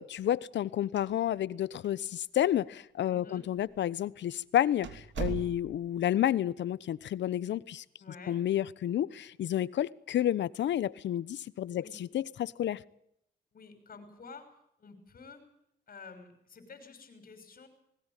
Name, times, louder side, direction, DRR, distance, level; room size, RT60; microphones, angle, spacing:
voice 1, 0.0-7.8 8.3-12.8, left 11 dB, 65° left, 1.0 m, -30 dB
sound 1, 0.8-1.6 1.8-1.9 2.7-2.8 3.6-3.8 4.2-4.3 4.8-6.0, right 7 dB, 70° right, 2.9 m, -39 dB
voice 2, 3.1-3.4 8.0-8.4 11.7-12.0 13.5-14.5 14.8-15.4 15.9-17.7, left 4 dB, 45° left, 6.2 m, -50 dB
20.5 x 18.0 x 9.2 m
cardioid pair, 90°, 20 cm